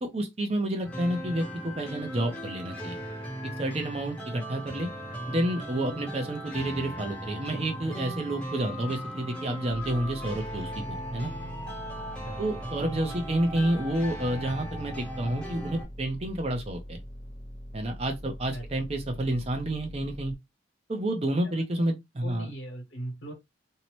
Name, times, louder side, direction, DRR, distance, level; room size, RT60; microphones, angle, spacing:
voice 1, 0.0-3.0 3.6-4.9 5.3-11.3 12.4-17.0 17.7-20.3 20.9-22.5, right 1 dB, 30° right, 0.5 m, -30 dB
sound 1, 0.8-15.8, equal, 5° left, 0.7 m, -38 dB
sound 2, 9.7-20.4, equal, 30° left, 0.8 m, -43 dB
voice 2, 18.5-18.9 22.2-23.3, right 1 dB, 70° left, 1.1 m, -39 dB
2.7 x 2.1 x 2.9 m
head